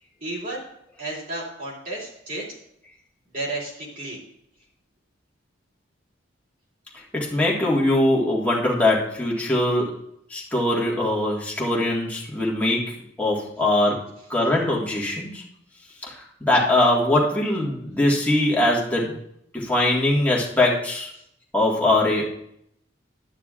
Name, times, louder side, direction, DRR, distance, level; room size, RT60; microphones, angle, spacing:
voice 1, 0.2-0.7 1.0-2.5 3.3-4.2, right 2 dB, 45° right, -4 dB, 2.9 m, -32 dB
voice 2, 7.1-9.9 10.3-15.4 16.0-19.1 19.5-21.1 21.5-22.4, left 1 dB, 10° left, -4 dB, 1.7 m, -22 dB
11.5 x 9.0 x 2.5 m, 0.72 s
head